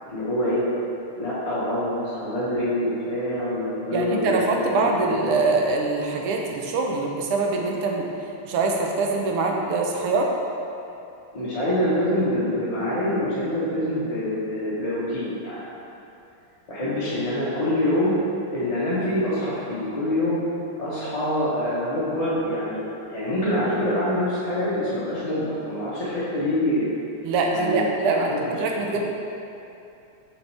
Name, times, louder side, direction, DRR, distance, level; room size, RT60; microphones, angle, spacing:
voice 1, 0.1-0.6 1.2-5.2 11.3-15.6 16.7-18.2 18.5-20.4 20.8-26.9 27.5-27.9 28.1-28.4 28.7-29.0, left 1 dB, 25° left, -10 dB, 0.9 m, -25 dB
voice 2, 3.9-8.1 8.4-10.3 27.2-29.0, right 3 dB, 90° right, 1 dB, 1.7 m, -24 dB
6.7 x 6.1 x 3.4 m, 2.7 s
omnidirectional pair, 2.4 m